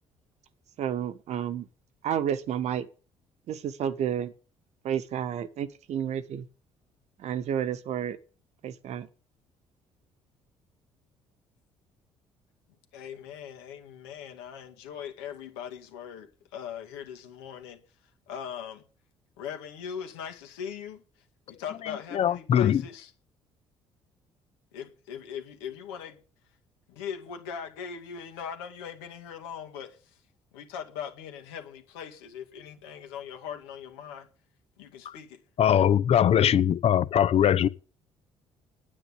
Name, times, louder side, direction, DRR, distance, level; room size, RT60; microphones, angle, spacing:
voice 1, 0.8-1.6 2.0-2.9 3.5-4.3 4.8-6.5 7.2-8.2 8.6-9.1, right 9 dB, 65° right, 1.3 m, -30 dB
voice 2, 12.9-17.8 18.3-18.8 19.4-21.0 21.5-23.1 24.7-26.2 26.9-30.2 30.5-34.3 34.8-35.4, left 8 dB, 85° left, 2.1 m, -40 dB
voice 3, 22.1-22.8 35.6-37.7, left 9 dB, 55° left, 0.9 m, -21 dB
9.8 x 9.0 x 8.4 m
hypercardioid pair, 55°, 13 cm